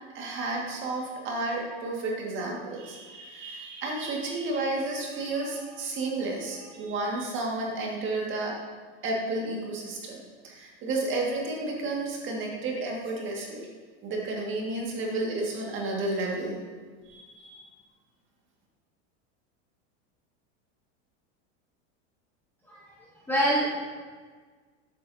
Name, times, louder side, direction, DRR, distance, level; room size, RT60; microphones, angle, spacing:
voice 1, 0.1-8.5 9.0-10.2 10.4-13.6 14.0-16.6 17.1-17.6, right 2 dB, 30° right, -1 dB, 1.8 m, -31 dB
voice 2, 23.3-24.0, right 1 dB, 5° left, -6 dB, 1.0 m, -26 dB
12.5 x 8.1 x 2.7 m, 1.5 s
supercardioid pair, 155°, 37 cm